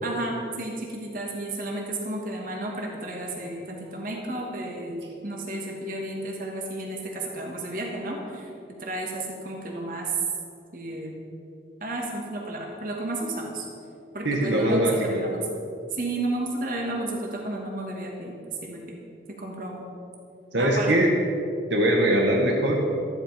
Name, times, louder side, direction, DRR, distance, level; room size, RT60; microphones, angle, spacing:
voice 1, 0.0-8.5 8.8-10.1 10.7-11.1 11.8-13.7 14.1-15.5 15.9-18.8 19.3-19.9 20.6-20.9, right 2 dB, 50° right, 0 dB, 2.6 m, -32 dB
voice 2, 14.2-14.9 20.5-21.1 21.7-22.8, right 1 dB, 80° right, -1 dB, 1.8 m, -21 dB
14.5 x 14.0 x 5.3 m, 2.7 s
head